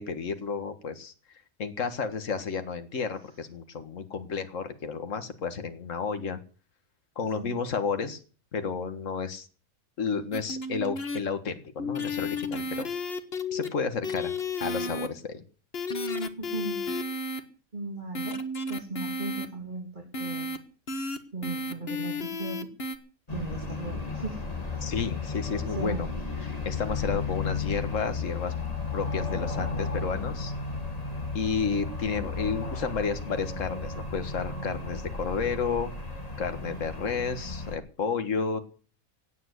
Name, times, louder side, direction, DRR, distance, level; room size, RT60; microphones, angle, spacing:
voice 1, 0.0-6.4 7.2-8.2 8.5-9.5 10.0-12.9 13.5-14.3 14.6-15.4 24.8-26.1 26.7-28.5 28.9-30.5 31.3-35.9 36.4-38.6, left 5 dB, 65° left, 8 dB, 2.0 m, -31 dB
sound 1, 10.3-11.2 11.8-13.7 14.0-15.1 15.7-17.4 18.1-19.5 20.1-20.6 20.9-21.2 21.4-23.0, left 2 dB, 45° left, 1.8 m, -32 dB
voice 2, 16.4-16.9 17.7-18.4 18.7-20.5 21.3-22.7 23.3-24.9 25.7-26.2, right 3 dB, 35° right, 2 dB, 3.2 m, -37 dB
sound 2, 23.3-37.8, left 4 dB, 25° left, 2.7 m, -34 dB
17.5 x 8.8 x 8.2 m, 0.39 s
omnidirectional pair, 1.5 m